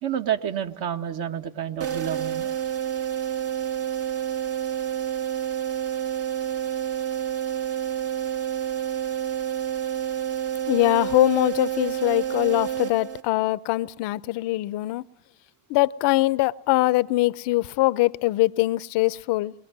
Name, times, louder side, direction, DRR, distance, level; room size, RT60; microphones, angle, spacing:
voice 1, 0.0-2.5, right 9 dB, 55° right, 2.2 m, -29 dB
sound 1, 1.8-13.5, right 10 dB, 30° right, 1.0 m, -29 dB
voice 2, 10.7-15.0 15.7-19.5, left 18 dB, 65° left, 0.9 m, -22 dB
29.0 x 22.0 x 7.5 m
supercardioid pair, 90°, 45 cm